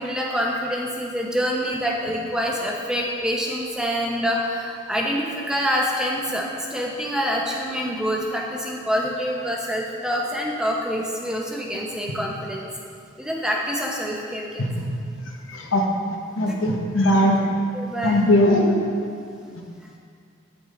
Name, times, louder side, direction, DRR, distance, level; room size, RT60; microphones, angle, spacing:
voice 1, 0.0-12.7 13.2-14.7 16.5-16.6 17.2-17.3 17.7-18.2 19.4-19.5, equal, 5° right, -2 dB, 0.7 m, -26 dB
voice 2, 15.5-15.9 16.4-17.4 18.0-18.8, left 1 dB, 85° left, 1 dB, 1.0 m, -19 dB
9.3 x 5.8 x 3.8 m, 2.3 s
head